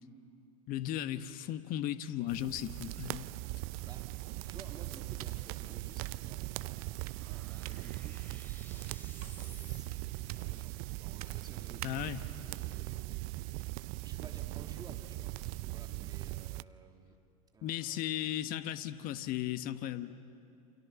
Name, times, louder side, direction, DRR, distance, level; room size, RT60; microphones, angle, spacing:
voice 1, 0.7-3.3 11.8-12.2 17.6-20.1, left 12 dB, 45° left, 11 dB, 1.4 m, -36 dB
sound 1, 2.3-16.6, right 20 dB, 50° right, 0.6 m, -40 dB
sound 2, 2.7-12.3, right 11 dB, 70° right, 1.5 m, -54 dB
sound 3, 2.9-10.4, left 2 dB, 10° left, 3.0 m, -60 dB
voice 2, 4.4-6.4 7.5-8.3 8.7-17.2 17.5-18.3, right 4 dB, 20° right, 3 dB, 2.9 m, -55 dB
28.5 x 28.5 x 7.0 m, 2.6 s
hypercardioid pair, 85°, 20 cm